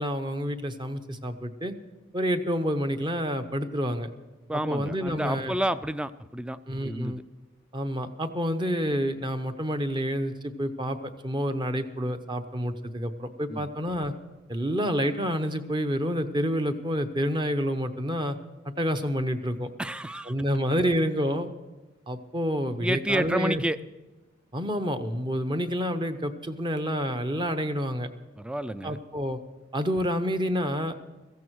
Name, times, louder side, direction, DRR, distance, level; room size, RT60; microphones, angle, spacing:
voice 1, 0.0-1.7 2.1-4.1 4.5-5.5 6.7-7.2 7.7-14.1 14.5-18.4 18.6-19.7 20.2-21.5 22.1-23.6 24.5-28.1 28.8-29.4 29.7-30.9, equal, 25° right, 8 dB, 0.8 m, -28 dB
voice 2, 4.5-6.6 6.8-7.2 13.5-13.7 19.8-20.3 22.8-23.8 28.4-29.0, right 1 dB, 5° right, 15 dB, 0.4 m, -29 dB
16.5 x 14.5 x 4.7 m, 1.1 s
head